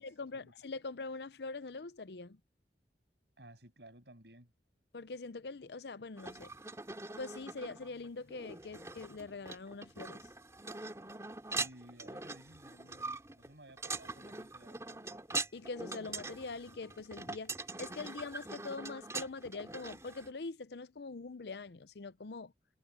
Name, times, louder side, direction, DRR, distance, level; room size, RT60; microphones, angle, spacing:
voice 1, 0.0-2.4 4.9-6.5 7.2-10.3 15.5-22.5, left 3 dB, 75° left, 0.7 m, -43 dB
voice 2, 3.4-4.5 11.6-15.0, right 1 dB, 75° right, 7.8 m, -56 dB
sound 1, 6.2-20.3, right 3 dB, 15° right, 2.5 m, -43 dB
head